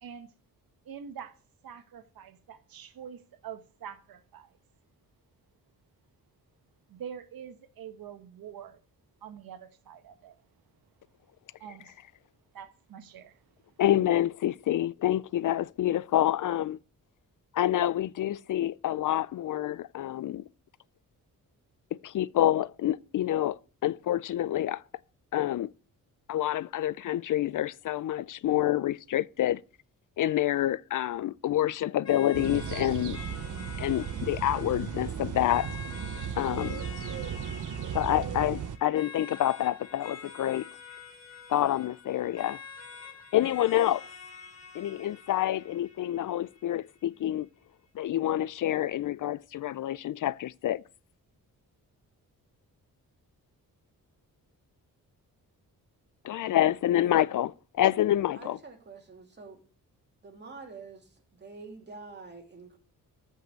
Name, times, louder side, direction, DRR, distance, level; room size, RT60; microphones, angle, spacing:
voice 1, 0.0-0.3 0.8-1.3 1.6-4.6 6.9-8.8 9.2-10.4 11.6-11.9 12.5-13.4, right 8 dB, 85° right, 1.3 m, -45 dB
voice 2, 13.8-16.8 17.5-20.4 22.0-24.8 25.3-25.7 26.3-29.6 30.2-33.2 33.8-35.8 36.4-36.8 37.9-40.7 41.5-42.6 43.3-44.0 44.7-47.5 47.9-50.8 56.2-58.6, left 12 dB, 60° left, 0.5 m, -27 dB
sound 1, 32.0-47.0, left 5 dB, 45° left, 3.2 m, -47 dB
sound 2, 32.3-38.8, right 8 dB, 60° right, 1.1 m, -36 dB
voice 3, 58.4-59.6 60.2-62.8, right 4 dB, 30° right, 2.8 m, -47 dB
14.0 x 5.4 x 6.7 m
wide cardioid pair, 145°, 34 cm